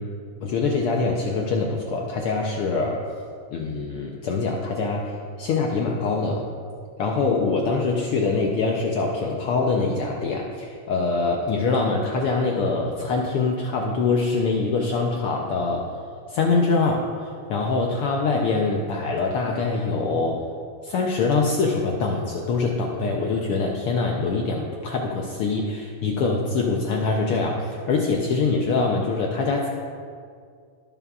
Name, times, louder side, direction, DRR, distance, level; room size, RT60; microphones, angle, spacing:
voice 1, 0.4-3.0 3.5-5.1 5.4-6.4 7.0-15.9 16.3-17.1 17.5-20.4 20.8-29.7, left 4 dB, 85° left, 0 dB, 1.2 m, -24 dB
18.0 x 7.2 x 2.4 m, 2.2 s
omnidirectional pair, 3.3 m